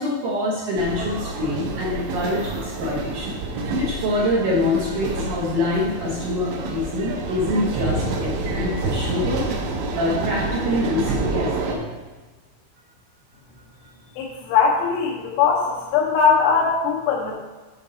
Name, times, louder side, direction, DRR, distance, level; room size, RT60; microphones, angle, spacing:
voice 1, 0.0-3.4 3.7-11.8, left 2 dB, 70° right, -6 dB, 2.0 m, -25 dB
sound 1, 0.8-11.8, right 3 dB, 85° right, 3.0 m, -28 dB
voice 2, 14.2-17.3, left 6 dB, 90° left, -4 dB, 3.1 m, -20 dB
8.2 x 5.2 x 3.9 m, 1.3 s
omnidirectional pair, 5.1 m